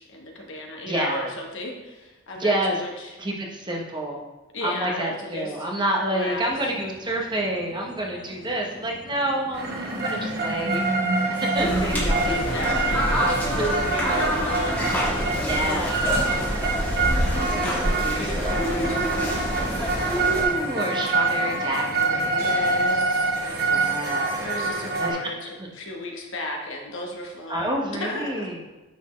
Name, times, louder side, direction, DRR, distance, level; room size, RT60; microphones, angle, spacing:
voice 1, 0.0-3.1 4.5-5.7 6.0-6.4 12.2-13.2 13.7-16.5 17.5-19.4 22.4-24.0 24.4-27.7 28.0-28.5, left 1 dB, 65° left, 1 dB, 1.0 m, -35 dB
voice 2, 0.9-1.3 2.4-2.8 3.2-4.3 4.6-10.8 11.4-13.1 13.7-14.5 15.4-16.0 17.3-18.6 20.0-22.5 23.6-24.4 25.0-25.2 25.6-25.7 27.5-28.6, right 1 dB, 20° right, -1 dB, 0.9 m, -29 dB
sound 1, 6.3-22.9, equal, 25° left, 0.9 m, -45 dB
Berlin Museum Technic Recording, 9.5-25.1, right 3 dB, 50° right, 1.0 m, -26 dB
sound 2, 11.6-20.4, equal, 10° left, 1.4 m, -26 dB
9.3 x 4.1 x 3.2 m, 1.1 s
head